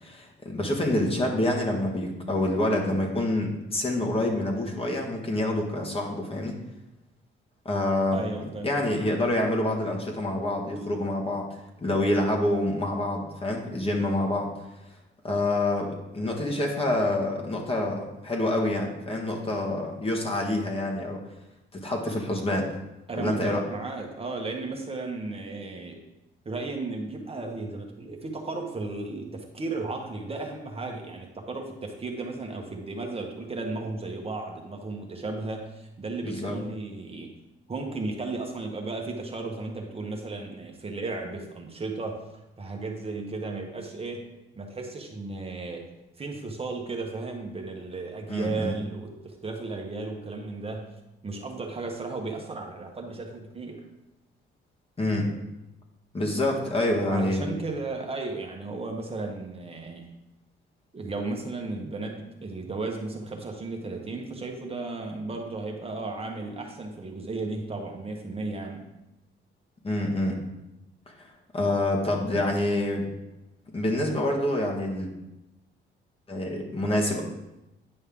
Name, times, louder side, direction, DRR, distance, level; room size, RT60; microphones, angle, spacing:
voice 1, 0.0-6.5 7.6-8.2 8.6-11.5 11.8-14.5 15.2-21.2 21.7-22.7 23.1-23.6 36.2-36.6 48.3-48.7 55.0-55.3 56.1-57.5 69.8-70.4 71.1-71.3 71.5-73.0 73.7-75.1 76.3-77.2, left 1 dB, 30° left, 0 dB, 1.6 m, -27 dB
voice 2, 8.1-8.7 23.1-26.0 26.4-37.3 37.7-42.2 42.6-44.3 44.6-45.9 46.2-50.8 51.2-53.8 57.1-60.1 60.9-68.8, right 3 dB, 30° right, 1 dB, 1.1 m, -34 dB
9.7 x 5.4 x 3.7 m, 0.94 s
cardioid pair, 90°, 20 cm